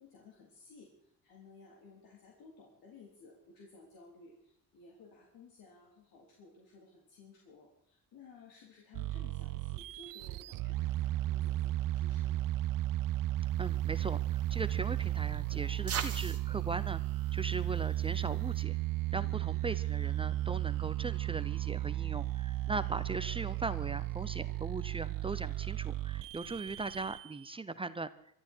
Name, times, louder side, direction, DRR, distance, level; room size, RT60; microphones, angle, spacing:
voice 1, 0.0-12.5 19.2-19.4, left 3 dB, 75° left, -2 dB, 3.9 m, -57 dB
sound 1, 8.9-27.5, right 15 dB, 65° right, 0.6 m, -34 dB
sound 2, 13.5-18.6, right 7 dB, 40° right, 1.8 m, -45 dB
voice 2, 13.6-18.8 19.1-28.1, right 3 dB, 15° right, 13 dB, 0.7 m, -39 dB
24.0 x 13.0 x 4.6 m, 0.74 s
cardioid pair, 130°, 35 cm